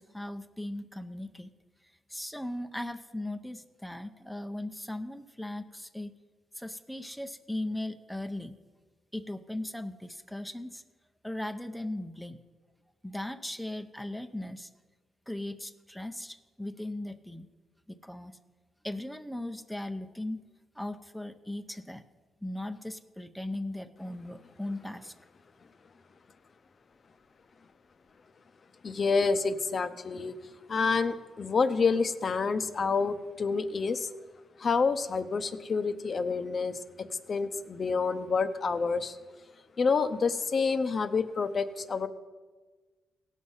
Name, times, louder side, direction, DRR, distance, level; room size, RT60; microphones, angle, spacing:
voice 1, 0.0-1.5 2.1-6.2 6.5-8.6 9.1-10.8 11.2-12.4 13.0-14.7 15.3-17.5 17.9-18.4 18.8-20.4 20.8-22.0 22.4-25.1, left 1 dB, ahead, 8 dB, 0.6 m, -38 dB
voice 2, 28.8-30.3 30.7-34.1 34.6-36.8 37.3-39.2 39.8-42.1, left 4 dB, 45° left, 11 dB, 0.7 m, -28 dB
17.5 x 6.4 x 5.5 m, 1.4 s
cardioid pair, 100°, 0 cm